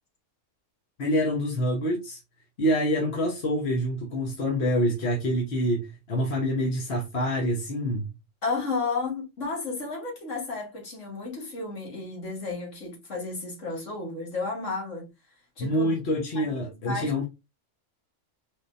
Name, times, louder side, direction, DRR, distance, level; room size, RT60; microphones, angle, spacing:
voice 1, 1.0-2.2 2.6-8.1 15.6-17.2, equal, 55° left, 1.4 m, -26 dB
voice 2, 8.4-15.1 15.6-15.9 16.4-17.1, left 3 dB, 70° left, 2.3 m, -32 dB
4.8 x 3.6 x 2.6 m
omnidirectional pair, 1.3 m